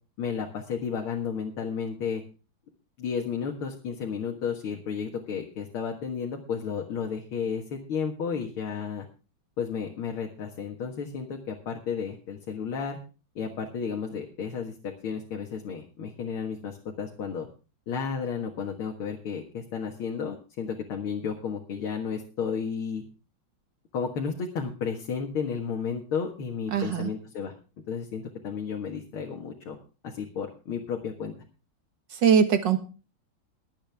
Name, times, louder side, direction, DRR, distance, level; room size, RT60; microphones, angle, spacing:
voice 1, 0.2-2.2 3.0-9.1 9.6-13.0 13.4-17.5 17.9-23.0 23.9-27.5 27.9-29.8 30.0-31.3, left 6 dB, 80° left, 0 dB, 2.5 m, -32 dB
voice 2, 26.7-27.1 32.1-32.8, right 7 dB, 60° right, 8 dB, 2.0 m, -21 dB
22.0 x 8.8 x 3.5 m, 0.34 s
omnidirectional pair, 2.3 m